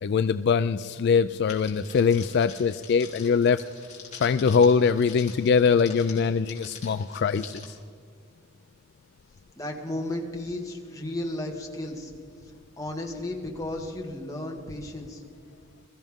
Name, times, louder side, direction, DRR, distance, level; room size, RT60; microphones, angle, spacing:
voice 1, 0.0-3.6 4.1-7.7, left 6 dB, 55° left, 12 dB, 0.3 m, -22 dB
Crackle, 1.5-7.6, left 6 dB, 35° left, 3.0 m, -45 dB
voice 2, 9.5-12.1 12.4-15.2, left 1 dB, 15° left, 0 dB, 1.8 m, -34 dB
22.0 x 14.0 x 3.6 m, 2.3 s
head